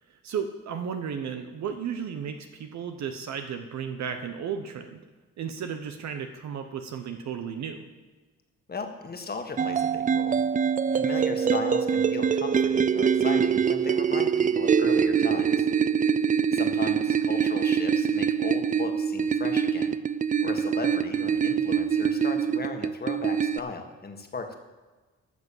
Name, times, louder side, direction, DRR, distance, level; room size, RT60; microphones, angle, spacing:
voice 1, 0.1-5.0 5.4-7.9, right 7 dB, 65° right, 6 dB, 1.0 m, -34 dB
voice 2, 8.7-10.4 10.9-15.7 16.5-20.0 20.4-24.5, left 4 dB, 30° left, 5 dB, 1.7 m, -37 dB
sound 1, 9.6-23.6, right 7 dB, 25° right, 0.4 m, -24 dB
13.5 x 6.1 x 7.4 m, 1.3 s
cardioid pair, 90°, 30 cm